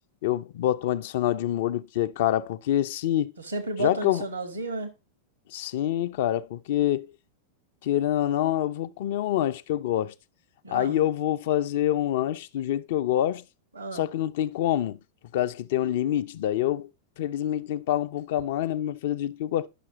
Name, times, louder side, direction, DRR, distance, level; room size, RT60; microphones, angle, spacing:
voice 1, 0.2-3.3 3.8-4.2 5.5-7.1 7.8-10.1 10.7-13.4 13.9-15.0 15.3-16.9 17.2-19.7, left 12 dB, 55° left, 0.3 m, -26 dB
voice 2, 3.4-4.9 10.6-11.0 13.7-14.0, right 2 dB, 80° right, 1.4 m, -32 dB
10.0 x 5.9 x 3.0 m
figure-of-eight pair, 90°, 0 cm